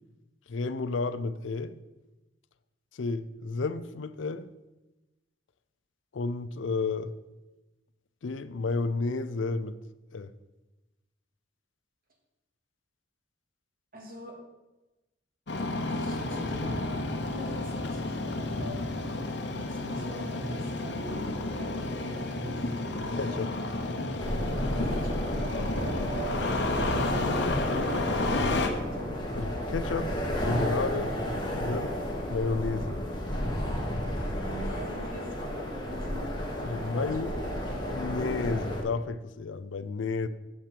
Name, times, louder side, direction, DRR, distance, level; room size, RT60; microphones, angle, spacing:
voice 1, 0.5-1.7 2.9-4.5 6.1-7.1 8.2-9.8 10.1-10.3 23.1-23.5 29.4-30.1 30.4-31.1 31.5-32.0 32.3-33.0 36.6-37.3 37.9-40.3, left 3 dB, 85° left, 14 dB, 0.5 m, -31 dB
voice 2, 13.9-14.3 15.9-19.2 19.6-22.6 24.8-26.1 26.7-29.2 34.4-36.3 36.8-37.5, equal, 50° right, 0 dB, 2.2 m, -44 dB
Engine starting, 15.5-28.7, left 2 dB, 65° left, 1.0 m, -31 dB
sound 1, 24.2-38.8, equal, 25° left, 1.5 m, -32 dB
7.6 x 5.8 x 6.7 m, 1.1 s
head